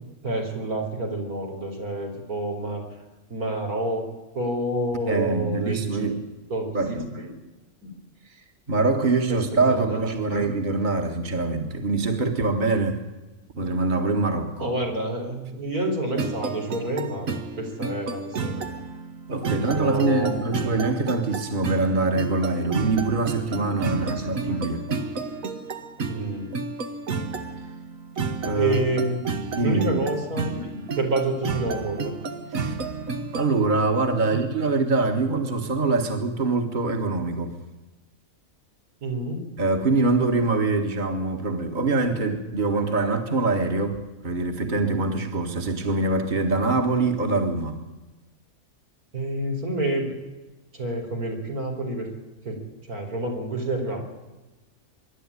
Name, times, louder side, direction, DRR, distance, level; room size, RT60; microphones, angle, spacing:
voice 1, 0.2-2.8 3.3-4.0 4.3-6.2 6.5-7.4 7.8-7.9 9.3-10.0 10.3-10.5 14.6-18.6 19.3-20.3 23.2-24.8 26.1-26.5 28.6-29.2 29.6-32.1 34.2-34.5 39.0-39.4 49.1-50.1 50.7-52.1 52.4-52.6 52.9-54.0, right 2 dB, 85° right, 4.7 m, -29 dB
voice 2, 5.0-6.2 6.7-7.1 8.7-13.0 13.6-14.7 19.3-24.8 28.4-28.8 29.5-30.0 32.5-32.8 33.3-37.5 39.6-47.8, right 3 dB, 35° right, 1.9 m, -24 dB
sound 1, 16.2-33.6, right 4 dB, 70° right, 1.9 m, -31 dB
25.0 x 11.5 x 9.8 m
omnidirectional pair, 1.5 m